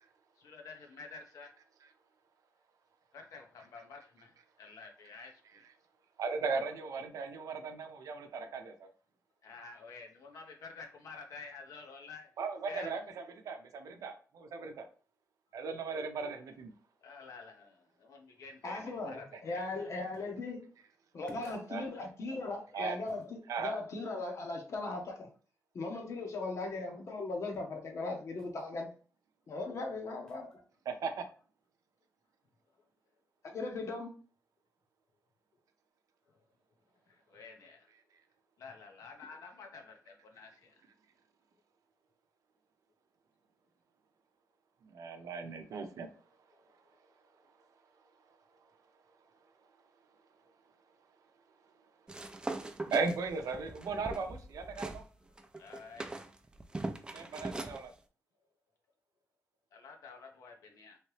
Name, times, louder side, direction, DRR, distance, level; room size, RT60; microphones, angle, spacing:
voice 1, 0.4-1.5 3.1-5.6 9.4-12.3 12.7-12.9 17.0-19.9 37.1-37.9 38.6-40.8 46.5-46.6 55.6-56.1 59.7-61.0, left 4 dB, 80° left, 0.8 m, -50 dB
voice 2, 6.2-8.9 12.4-13.0 13.4-14.8 15.5-16.7 21.7-21.9 22.7-23.0 23.5-23.8 30.9-31.2 44.8-46.1 52.9-55.0 57.1-57.9, right 4 dB, 80° right, 0.6 m, -37 dB
voice 3, 18.6-20.6 21.1-25.3 25.7-28.9 29.5-30.6 33.4-34.1, left 3 dB, 60° left, 1.0 m, -38 dB
sound 1, 20.1-20.4 21.3-21.8 23.1-23.3 28.4-28.6 30.3-30.6, left 2 dB, 15° left, 0.8 m, -56 dB
sound 2, 52.1-55.0 55.4-57.8, right 2 dB, 15° right, 0.4 m, -41 dB
3.2 x 2.9 x 3.1 m
cardioid pair, 95°, 6 cm